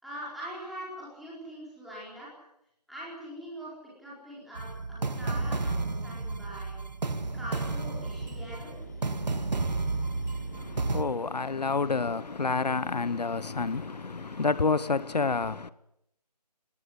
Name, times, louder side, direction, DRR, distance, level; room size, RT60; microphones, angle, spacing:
voice 1, 0.0-2.5 2.9-6.7 7.3-8.7, right 1 dB, ahead, 4.4 m, -42 dB
sound 1, 4.6-11.0, right 3 dB, 85° right, 2.1 m, -32 dB
sound 2, 7.3-14.7, left 4 dB, 25° left, 2.9 m, -49 dB
voice 2, 10.5-15.7, left 4 dB, 75° left, 1.1 m, -29 dB
20.0 x 19.0 x 9.9 m
figure-of-eight pair, 175°, 21 cm